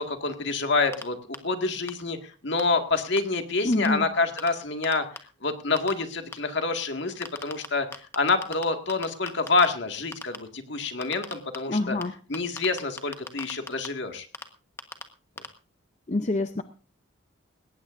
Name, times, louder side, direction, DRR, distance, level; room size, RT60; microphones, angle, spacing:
voice 1, 0.0-5.1 5.4-7.9 8.2-12.0 12.3-14.3, left 3 dB, 55° left, 6 dB, 2.0 m, -27 dB
sound 1, 0.9-1.0 1.3-1.4 1.9-2.0 2.6-2.7 3.2-3.3 3.8-3.9 4.4-4.5 4.8-5.2 5.8-5.9 6.3-6.4 7.2-7.7 7.9-8.6 8.9-9.7 10.1-10.4 11.0-11.6 12.0-12.1 12.3-13.9 14.3-14.4 14.8-15.0 15.4-15.5, left 3 dB, 10° left, 1.2 m, -36 dB
voice 2, 3.6-4.1 11.7-12.2 16.1-16.6, left 2 dB, 35° left, 9 dB, 0.6 m, -26 dB
19.5 x 17.5 x 2.6 m, 0.36 s
head